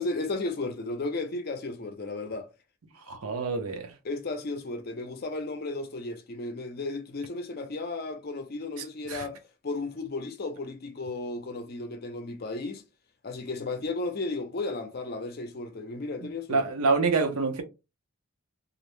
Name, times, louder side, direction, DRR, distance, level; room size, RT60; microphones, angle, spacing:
voice 1, 0.0-2.5 4.0-12.8 13.2-16.6, left 3 dB, 45° left, 0.5 m, -34 dB
voice 2, 3.1-3.9 9.1-9.3 16.5-17.6, right 4 dB, 90° right, 0.6 m, -26 dB
2.5 x 2.0 x 3.0 m
head